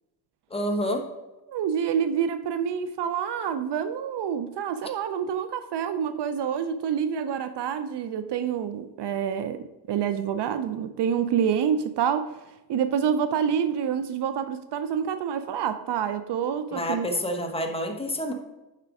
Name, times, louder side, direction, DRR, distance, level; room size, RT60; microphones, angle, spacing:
voice 1, 0.5-1.0 16.7-18.3, equal, 15° left, 4 dB, 1.0 m, -28 dB
voice 2, 1.5-12.3 12.7-17.1, right 8 dB, 75° right, 11 dB, 0.6 m, -27 dB
7.5 x 5.0 x 4.8 m, 1.0 s
cardioid pair, 115°, 42 cm